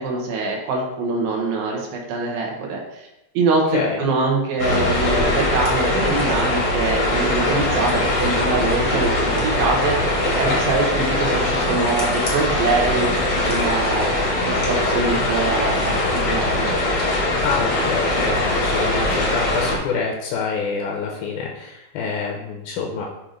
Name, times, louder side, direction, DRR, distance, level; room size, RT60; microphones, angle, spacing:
voice 1, 0.0-3.0 3.3-10.0 10.3-14.1 14.4-16.8, right 3 dB, 80° right, 0 dB, 2.8 m, -24 dB
sound 1, 4.6-19.8, left 1 dB, 60° left, 1.1 m, -21 dB
voice 2, 17.4-23.1, left 5 dB, 80° left, -1 dB, 2.5 m, -26 dB
7.5 x 2.6 x 5.0 m, 0.90 s
omnidirectional pair, 4.3 m